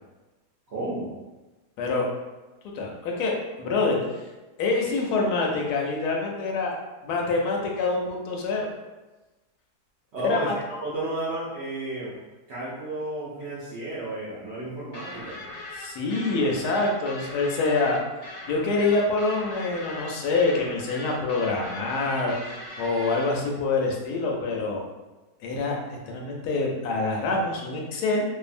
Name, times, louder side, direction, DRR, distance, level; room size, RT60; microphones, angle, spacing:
voice 1, 0.7-1.1 10.1-12.2 12.5-15.4, right 2 dB, 65° right, -8 dB, 0.7 m, -32 dB
voice 2, 2.6-3.3 3.6-4.3 4.6-6.7 7.0-8.7 10.2-10.5 15.8-18.0 18.5-22.3 22.8-24.8 25.4-28.2, left 3 dB, 80° left, 0 dB, 1.1 m, -26 dB
sound 1, 14.9-23.3, left 1 dB, 60° left, 0.8 m, -40 dB
2.6 x 2.4 x 2.4 m, 1.1 s
omnidirectional pair, 1.7 m